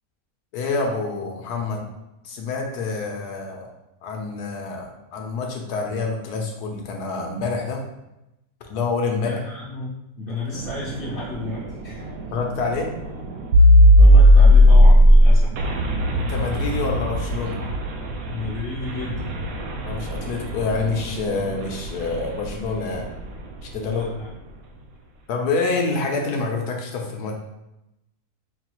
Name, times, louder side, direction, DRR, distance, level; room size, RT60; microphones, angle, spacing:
voice 1, 0.5-1.9 2.2-3.7 4.0-7.8 8.7-9.4 12.3-12.9 16.1-17.6 19.8-23.1 23.6-24.1 25.3-27.4, left 4 dB, 75° left, 1 dB, 1.2 m, -27 dB
voice 2, 9.1-12.1 14.0-15.5 18.2-19.3 23.7-24.3, left 3 dB, 50° left, -8 dB, 0.7 m, -32 dB
sound 1, 10.5-23.3, equal, 70° right, 0.7 m, -17 dB
5.3 x 2.4 x 3.0 m, 0.91 s
omnidirectional pair, 1.7 m